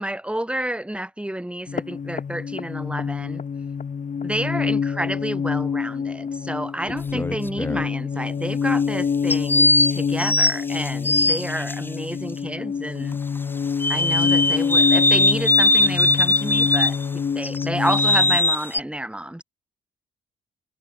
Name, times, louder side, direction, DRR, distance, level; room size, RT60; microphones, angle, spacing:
voice 1, 0.0-3.4 4.2-13.2 13.9-19.4, right 1 dB, 5° right, 5.6 m, -30 dB
sound 1, 1.7-18.4, left 6 dB, 40° left, 2.0 m, -26 dB
sound 2, 6.9-7.9 9.3-11.7 13.8-17.0 17.4-18.8, left 2 dB, 10° left, 0.9 m, -20 dB
open air
cardioid pair, 90°, 20 cm